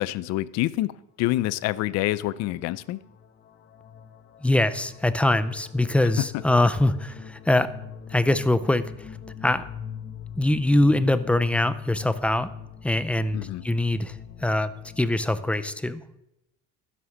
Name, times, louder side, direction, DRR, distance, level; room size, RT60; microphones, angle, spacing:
voice 1, 0.0-3.0 6.2-6.4 13.3-13.7, left 16 dB, 60° left, 18 dB, 0.6 m, -27 dB
sound 1, 2.3-2.4 2.7-15.5, left 8 dB, 35° left, 1.1 m, -42 dB
voice 2, 4.4-7.7 8.1-9.1 9.4-9.7 10.4-12.5 12.8-16.0, left 1 dB, 5° left, 13 dB, 0.5 m, -23 dB
12.5 x 11.0 x 6.5 m, 0.89 s
cardioid pair, 150°, 29 cm